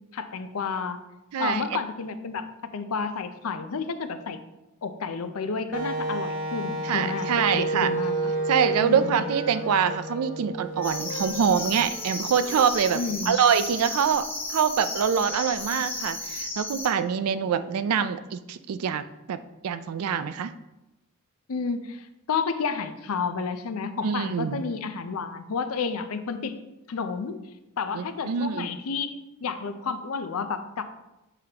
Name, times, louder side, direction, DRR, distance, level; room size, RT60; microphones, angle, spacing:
voice 1, 0.1-1.0 1.4-2.5 2.7-4.4 4.8-8.3 8.8-9.2 12.9-13.3 21.5-26.5 26.9-27.4 27.8-30.8, left 5 dB, 70° left, 10 dB, 0.5 m, -31 dB
voice 2, 1.3-1.6 6.8-7.9 8.5-13.0 13.3-19.4 19.6-20.5 24.0-24.6 27.9-28.7, right 7 dB, 75° right, 12 dB, 0.4 m, -25 dB
Wind instrument woodwind instrument, 5.7-11.5, right 2 dB, 40° right, 1.0 m, -30 dB
Wind instrument woodwind instrument 2, 7.1-10.2 10.7-14.1, left 2 dB, 90° left, 1.3 m, -42 dB
sound 1, 10.8-16.9, left 2 dB, 10° left, 0.8 m, -34 dB
7.4 x 4.9 x 2.9 m, 0.96 s
head